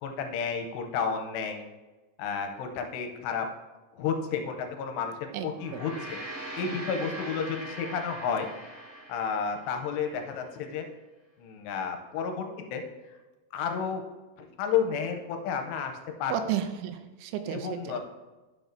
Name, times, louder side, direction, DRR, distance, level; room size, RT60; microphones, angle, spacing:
voice 1, 0.0-1.6 2.2-3.5 4.0-6.2 6.5-8.5 9.1-10.9 11.4-12.5 12.7-12.8 13.5-14.0 14.4-15.9 16.2-16.3 17.5-18.0, left 6 dB, 85° left, 4 dB, 2.7 m, -31 dB
voice 2, 5.3-5.8 16.3-18.0, right 9 dB, 85° right, 8 dB, 3.0 m, -33 dB
Gong, 5.5-10.1, right 1 dB, 40° right, 3.0 m, -41 dB
10.0 x 6.2 x 2.6 m, 1.2 s
omnidirectional pair, 5.1 m